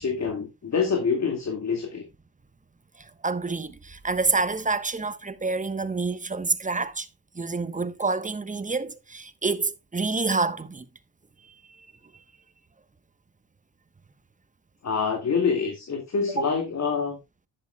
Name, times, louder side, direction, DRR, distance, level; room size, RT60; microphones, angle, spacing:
voice 1, 0.0-2.0 14.8-17.2, left 5 dB, 40° left, 2.3 m, -26 dB
voice 2, 3.2-7.1 7.3-10.8 16.3-16.5, right 3 dB, 20° right, 1.1 m, -27 dB
10.5 x 9.9 x 2.3 m
supercardioid pair, 60°, 40 cm